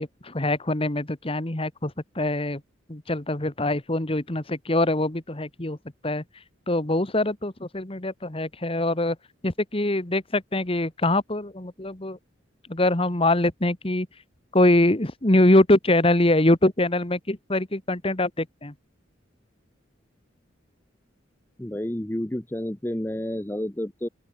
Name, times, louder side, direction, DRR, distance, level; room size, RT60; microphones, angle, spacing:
voice 1, 0.0-2.6 2.9-5.8 6.0-6.2 6.7-9.2 9.4-12.2 12.7-14.1 14.5-18.7, left 1 dB, 30° left, 1.7 m, -23 dB
voice 2, 21.6-24.1, left 1 dB, 10° left, 0.8 m, -30 dB
open air
head